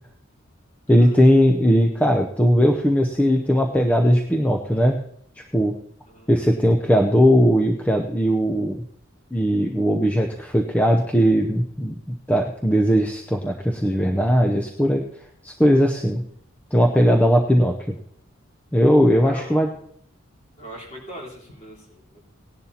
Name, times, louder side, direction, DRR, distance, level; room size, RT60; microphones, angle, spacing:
voice 1, 0.9-5.0 5.5-5.7 6.3-8.8 9.3-15.0 15.4-16.2 16.7-17.9 18.7-19.7, equal, 5° left, 2 dB, 0.6 m, -18 dB
voice 2, 6.0-6.4 19.2-19.8 20.6-22.2, right 1 dB, 35° left, -3 dB, 4.0 m, -41 dB
18.0 x 11.0 x 2.9 m, 0.67 s
head